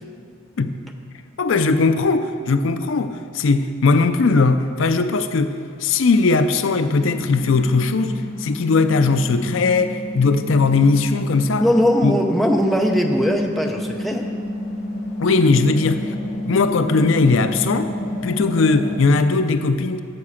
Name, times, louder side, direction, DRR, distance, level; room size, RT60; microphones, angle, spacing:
voice 1, 1.4-11.7 12.0-12.1 15.2-16.2 16.4-17.9 18.2-20.0, left 3 dB, 60° left, 9 dB, 0.4 m, -19 dB
sound 1, 6.9-19.0, left 1 dB, 30° left, 2.3 m, -30 dB
voice 2, 11.6-14.3, equal, ahead, 1 dB, 0.6 m, -19 dB
9.7 x 6.6 x 7.1 m, 2.4 s
head